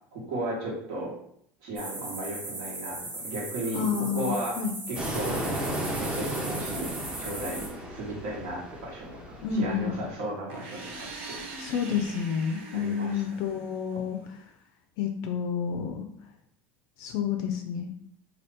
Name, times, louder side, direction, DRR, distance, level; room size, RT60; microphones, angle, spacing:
voice 1, 0.1-1.1 1.6-3.9 4.1-4.5 4.9-5.4 6.0-6.9 7.2-11.4 12.7-13.2, right 1 dB, 70° right, -3 dB, 1.3 m, -35 dB
sound 1, 1.8-7.7, right 2 dB, 35° right, 1.1 m, -38 dB
voice 2, 3.7-4.8 9.4-10.0 11.6-14.4 15.0-16.1 17.0-17.9, left 7 dB, 65° left, 5 dB, 0.4 m, -30 dB
Fixed-wing aircraft airplane, 5.0-10.1, equal, 15° right, 0.6 m, -34 dB
sound 2, 10.5-14.2, right 3 dB, 90° right, 0.6 m, -42 dB
2.8 x 2.4 x 3.3 m, 0.68 s
supercardioid pair, 120°, 6 cm